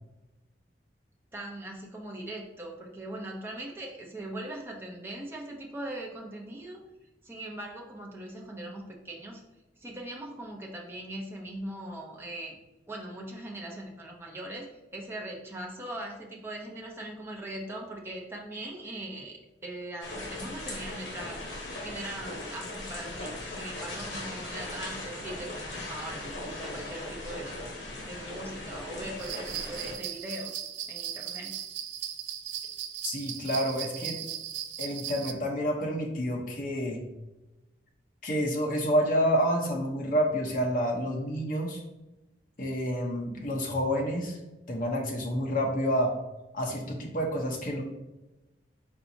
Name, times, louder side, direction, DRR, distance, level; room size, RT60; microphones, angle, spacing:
voice 1, 1.3-6.8 7.2-9.4 9.8-12.5 12.9-21.5 21.8-27.6 28.1-31.5, right 1 dB, 15° right, -1 dB, 0.7 m, -40 dB
sound 1, 20.0-29.9, left 2 dB, 85° left, 1.3 m, -39 dB
sound 2, 29.2-35.3, right 10 dB, 85° right, 0.4 m, -37 dB
voice 2, 33.0-34.2 34.8-37.0 38.2-41.8 42.6-44.4 44.7-46.1 46.5-47.8, equal, 45° left, 0 dB, 0.8 m, -28 dB
4.4 x 4.1 x 2.7 m, 1.0 s
head